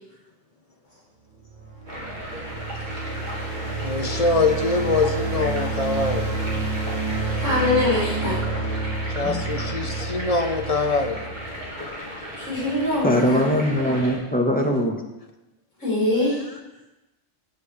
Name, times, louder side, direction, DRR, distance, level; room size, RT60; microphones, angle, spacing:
sound 1, 1.4-11.6, right 3 dB, 60° right, 3.1 m, -29 dB
sound 2, 1.9-14.2, equal, 35° right, 2.7 m, -36 dB
voice 1, 3.8-6.3 9.1-11.2, left 3 dB, 30° left, 5 dB, 0.9 m, -23 dB
voice 2, 7.4-8.4 12.4-13.6 15.8-16.4, left 2 dB, 70° left, -6 dB, 5.1 m, -23 dB
voice 3, 13.0-15.0, equal, 5° left, 1 dB, 1.2 m, -21 dB
16.0 x 8.2 x 3.4 m, 0.99 s
omnidirectional pair, 1.4 m